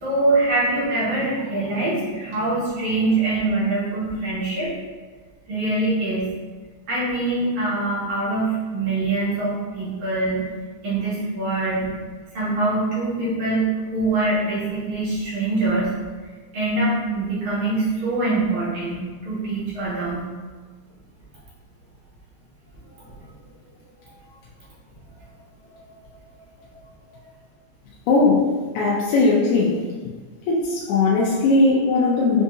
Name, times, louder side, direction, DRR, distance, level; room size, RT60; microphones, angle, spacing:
voice 1, 0.0-4.7 5.5-6.2 6.9-8.5 8.7-10.4 10.8-11.9 12.3-13.6 13.9-15.9 16.5-20.2, right 2 dB, 70° right, -10 dB, 2.7 m, -23 dB
voice 2, 28.1-28.5 28.8-29.8 30.1-30.2 30.5-32.4, left 3 dB, 80° left, -6 dB, 2.0 m, -18 dB
6.9 x 2.5 x 2.7 m, 1.4 s
omnidirectional pair, 3.5 m